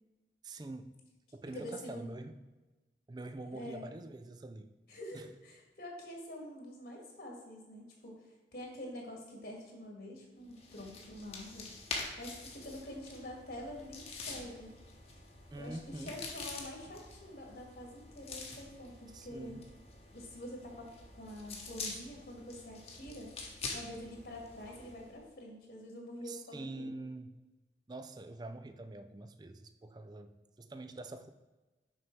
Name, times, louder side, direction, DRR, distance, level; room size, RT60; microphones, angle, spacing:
voice 1, 0.4-0.9 1.3-2.4 3.1-4.7 5.1-5.3 15.5-16.2 19.1-19.6 26.3-27.3 27.9-30.3 30.6-31.3, right 2 dB, 25° right, 9 dB, 0.4 m, -45 dB
voice 2, 1.5-2.1 3.4-3.9 4.9-11.7 12.2-14.7 15.6-19.6 20.1-23.3 23.7-26.9, left 1 dB, 60° left, 0 dB, 1.9 m, -46 dB
sound 1, 10.5-25.2, left 3 dB, 35° left, 1.1 m, -46 dB
6.6 x 5.4 x 4.5 m, 1.2 s
head